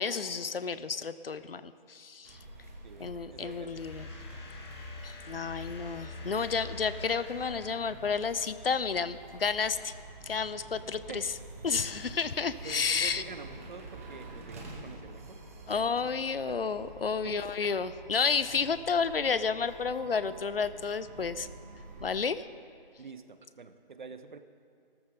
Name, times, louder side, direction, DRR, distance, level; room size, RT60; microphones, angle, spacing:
voice 1, 0.0-2.4 3.0-4.1 5.0-9.9 10.2-11.2 11.6-13.2 15.7-21.5 22.0-22.5, left 5 dB, 75° left, 14 dB, 0.7 m, -31 dB
sound 1, 2.2-22.2, right 2 dB, 15° right, 0.9 m, -48 dB
voice 2, 2.8-3.8 11.1-11.2 12.0-12.1 12.6-15.4 15.7-16.0 16.5-16.9 17.2-17.7 23.0-24.4, right 5 dB, 55° right, 10 dB, 1.0 m, -47 dB
sound 2, 3.8-8.5, left 3 dB, 25° left, 2.1 m, -45 dB
17.5 x 14.0 x 3.9 m, 2.4 s
figure-of-eight pair, 155°, 29 cm